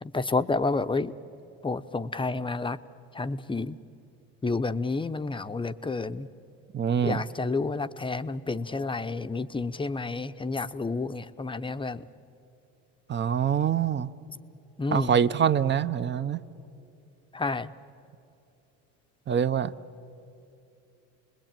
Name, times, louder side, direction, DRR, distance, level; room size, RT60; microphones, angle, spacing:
voice 1, 0.0-1.1 1.6-2.8 3.1-3.8 4.4-6.3 7.0-12.0 14.8-15.1 17.3-17.7, left 3 dB, 15° left, 10 dB, 0.7 m, -30 dB
voice 2, 6.7-7.2 13.1-14.1 14.9-16.4 19.3-19.7, right 8 dB, 30° right, 13 dB, 0.8 m, -25 dB
29.5 x 21.0 x 9.0 m, 2.8 s
supercardioid pair, 100°, 35 cm